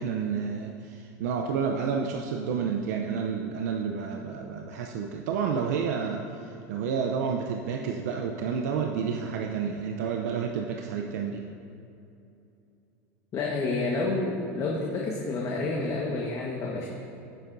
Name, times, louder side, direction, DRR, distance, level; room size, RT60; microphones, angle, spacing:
voice 1, 0.0-11.4, right 6 dB, 80° right, 2 dB, 0.7 m, -30 dB
voice 2, 13.3-16.9, left 3 dB, 40° left, -2 dB, 1.4 m, -29 dB
17.0 x 7.6 x 2.7 m, 2.7 s
supercardioid pair, 115°, 9 cm